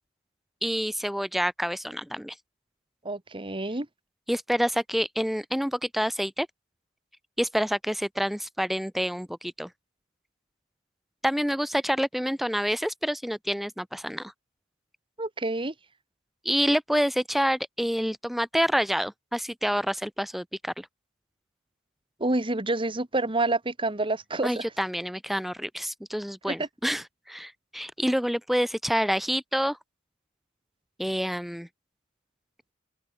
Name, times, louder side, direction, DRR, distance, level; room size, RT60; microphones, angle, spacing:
voice 1, 0.6-2.3 4.3-6.5 7.4-9.7 11.2-14.3 16.4-20.9 24.4-29.8 31.0-31.7, equal, ahead, 0.7 m, -28 dB
voice 2, 3.0-3.9 15.2-15.7 22.2-24.7 26.5-26.7, right 2 dB, 25° right, 1.6 m, -28 dB
open air
head